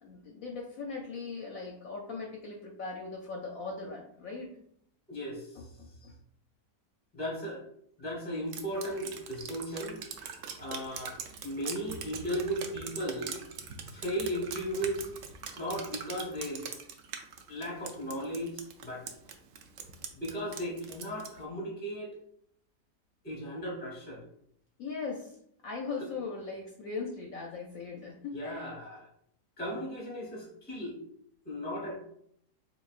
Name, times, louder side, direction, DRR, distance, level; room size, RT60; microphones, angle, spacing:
voice 1, 0.0-4.6 5.6-6.1 24.8-25.4 25.6-28.7, left 4 dB, 65° left, -1 dB, 0.9 m, -39 dB
voice 2, 5.1-5.7 7.1-7.6 8.0-10.0 10.6-11.2 11.4-13.4 13.9-15.1 15.6-16.7 17.5-19.0 20.1-22.2 23.2-24.2 26.0-26.1 28.3-29.1 29.6-31.0 31.4-32.0, equal, 10° left, -2 dB, 0.6 m, -36 dB
Drip, 8.5-21.4, right 6 dB, 80° right, 0.6 m, -42 dB
4.0 x 3.6 x 2.4 m, 0.70 s
omnidirectional pair, 1.8 m